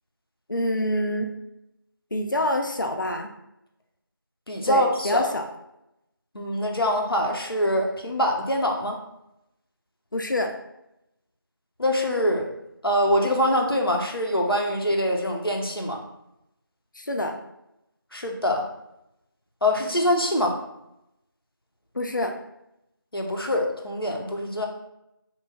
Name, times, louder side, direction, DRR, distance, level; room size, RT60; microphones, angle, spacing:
voice 1, 0.5-1.3 2.1-3.3 4.7-5.5 10.1-10.5 17.0-17.4 21.9-22.3, left 1 dB, 60° left, 3 dB, 0.4 m, -26 dB
voice 2, 4.5-5.3 6.3-9.0 11.8-12.5 12.8-16.0 18.1-18.7 19.6-20.6 23.1-24.7, equal, 80° left, 1 dB, 0.7 m, -24 dB
3.0 x 2.2 x 3.5 m, 0.84 s
figure-of-eight pair, 180°, 12 cm